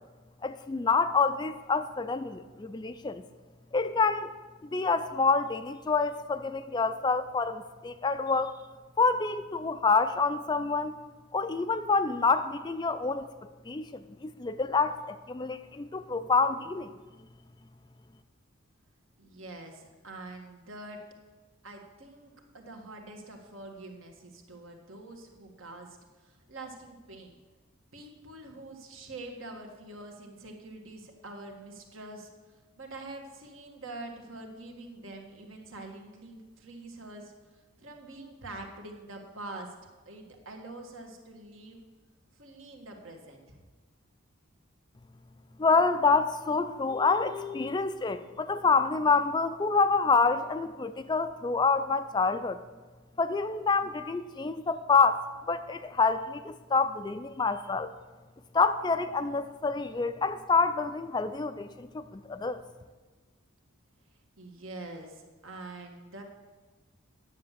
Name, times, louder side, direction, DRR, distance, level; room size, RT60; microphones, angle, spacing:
voice 1, 0.4-3.2 3.7-4.3 4.6-8.6 9.0-11.0 11.3-13.3 13.7-16.9 45.6-52.6 53.2-57.9 58.5-62.6, left 4 dB, 20° left, 11 dB, 0.3 m, -27 dB
voice 2, 19.2-21.0 21.6-27.4 27.9-32.3 32.8-37.3 37.8-39.7 40.1-41.8 42.3-43.6 64.4-66.2, right 2 dB, 70° right, 3 dB, 1.7 m, -45 dB
10.0 x 7.2 x 7.3 m, 1.3 s
head